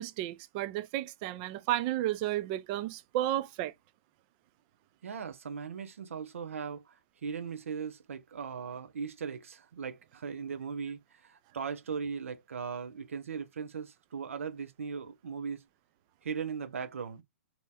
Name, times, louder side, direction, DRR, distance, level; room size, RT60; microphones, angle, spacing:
voice 1, 0.0-3.7, right 13 dB, 35° right, 0.5 m, -32 dB
voice 2, 5.0-15.6 16.2-17.2, right 6 dB, 65° right, 0.9 m, -38 dB
4.3 x 3.0 x 2.2 m
figure-of-eight pair, 125°, 8 cm